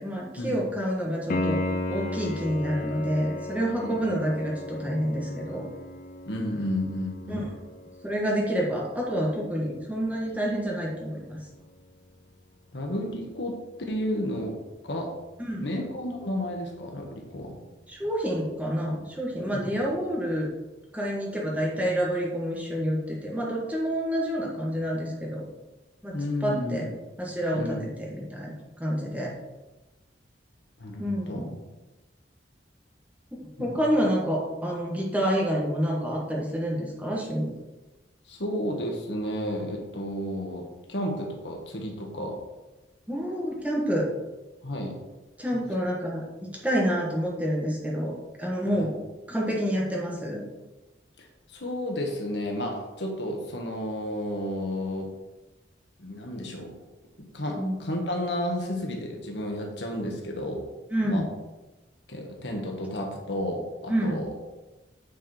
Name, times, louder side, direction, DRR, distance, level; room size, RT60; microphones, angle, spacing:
voice 1, 0.0-1.6 1.9-5.6 7.3-7.4 8.0-11.4 15.4-15.6 17.9-20.5 20.9-25.5 26.0-26.1 26.4-26.8 27.2-29.3 31.0-31.5 33.3-37.6 43.1-44.1 45.4-48.1 48.4-48.9 49.3-50.4 57.6-57.7 60.9-61.2 63.9-64.2, equal, 10° right, -3 dB, 1.5 m, -28 dB
Piano, 1.3-12.0 15.3-15.4, left 2 dB, 50° left, 0.6 m, -36 dB
voice 2, 6.3-7.4 12.7-13.6 13.9-14.6 14.8-15.1 15.6-17.7 19.5-19.9 26.1-26.9 27.5-27.9 30.8-31.5 33.6-33.8 38.3-42.4 44.6-45.0 45.5-45.6 48.7-48.9 51.2-55.1 56.0-56.7 57.2-60.7 61.0-61.3 62.1-64.3, left 1 dB, 70° left, 1 dB, 1.6 m, -32 dB
9.1 x 4.8 x 4.4 m, 1.1 s
head